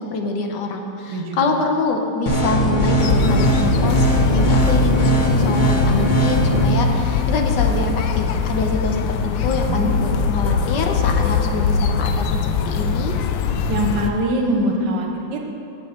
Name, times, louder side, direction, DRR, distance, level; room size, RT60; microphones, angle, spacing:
voice 1, 0.0-13.1, left 3 dB, 70° left, 3 dB, 1.5 m, -25 dB
voice 2, 1.1-1.6 9.7-9.9 13.7-15.4, right 1 dB, 70° right, 1 dB, 1.7 m, -23 dB
sound 1, 2.3-6.6, equal, 25° left, 1.3 m, -19 dB
sound 2, 3.0-14.1, left 6 dB, 85° left, 1.4 m, -22 dB
17.0 x 6.3 x 4.3 m, 2.8 s
omnidirectional pair, 2.0 m